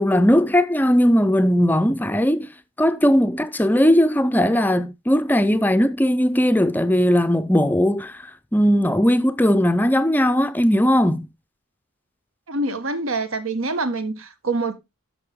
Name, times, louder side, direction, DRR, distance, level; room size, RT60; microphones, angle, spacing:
voice 1, 0.0-2.5 2.8-11.3, equal, 10° left, 0.4 m, -18 dB
voice 2, 12.5-14.8, right 2 dB, 80° right, 1.5 m, -25 dB
12.5 x 5.4 x 3.6 m
head